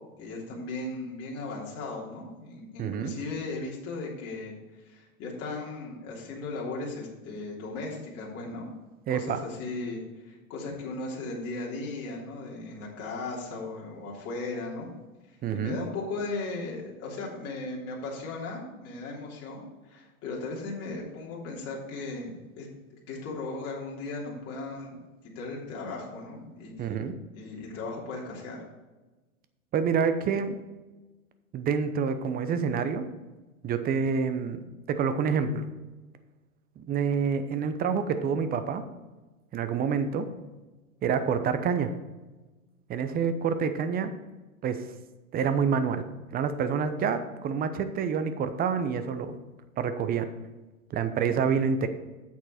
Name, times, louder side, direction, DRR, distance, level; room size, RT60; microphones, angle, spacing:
voice 1, 0.2-8.7 9.1-14.9 15.3-25.0 25.3-28.6, left 3 dB, 35° left, -3 dB, 3.2 m, -37 dB
voice 2, 2.8-3.1 9.1-9.4 15.4-15.8 26.8-27.1 29.7-30.6 31.5-33.0 33.6-34.6 34.9-35.7 36.8-38.8 39.5-40.3 41.0-41.9 42.9-44.1 44.6-44.9 45.3-46.0 46.3-49.4 49.8-50.3 50.9-51.9, right 6 dB, 20° right, 10 dB, 0.8 m, -27 dB
8.8 x 7.5 x 4.3 m, 1.2 s
hypercardioid pair, 110°, 43 cm